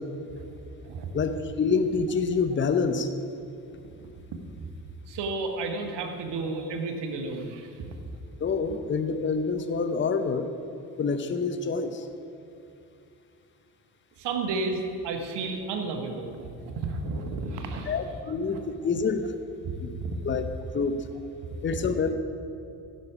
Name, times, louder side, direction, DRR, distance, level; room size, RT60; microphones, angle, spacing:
voice 1, 1.1-3.1 8.4-10.5 11.0-12.0 17.9-19.3 19.8-19.9 20.2-20.5 20.7-21.0 21.6-22.1, left 5 dB, 25° left, 9 dB, 0.8 m, -27 dB
voice 2, 5.1-7.9 14.2-17.9 18.5-18.7 19.6-20.1, right 3 dB, 55° right, 5 dB, 1.4 m, -32 dB
15.0 x 6.8 x 4.9 m, 2.6 s
figure-of-eight pair, 40°, 49 cm